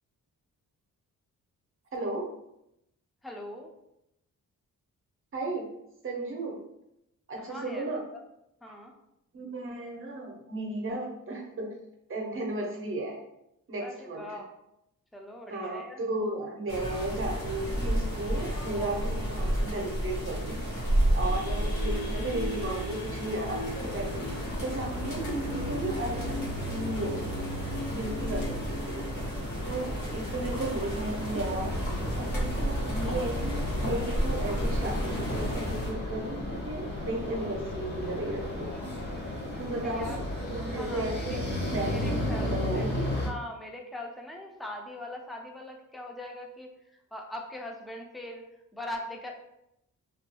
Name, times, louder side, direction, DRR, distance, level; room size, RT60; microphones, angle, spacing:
voice 1, 1.9-2.3 5.3-5.7 6.0-6.6 7.3-8.0 8.7-8.8 9.3-11.7 12.1-13.2 13.7-14.4 15.5-20.6 21.1-24.3 24.6-27.2 27.9-29.2 29.7-31.7 32.1-38.7 39.6-43.0, right 2 dB, 40° right, 0 dB, 0.7 m, -34 dB
voice 2, 3.2-3.7 7.4-7.9 8.6-8.9 13.8-14.5 15.1-16.0 39.8-40.2 40.6-41.3 41.9-42.9 43.1-46.7 47.1-48.4 48.7-49.3, left 1 dB, ahead, 2 dB, 0.3 m, -41 dB
sound 1, 16.7-35.9, equal, 55° left, 1.0 m, -32 dB
sound 2, 21.2-30.6, equal, 85° left, 0.6 m, -40 dB
sound 3, 23.7-43.3, left 1 dB, 30° left, 0.8 m, -34 dB
2.6 x 2.3 x 2.2 m, 0.83 s
cardioid pair, 85°, 34 cm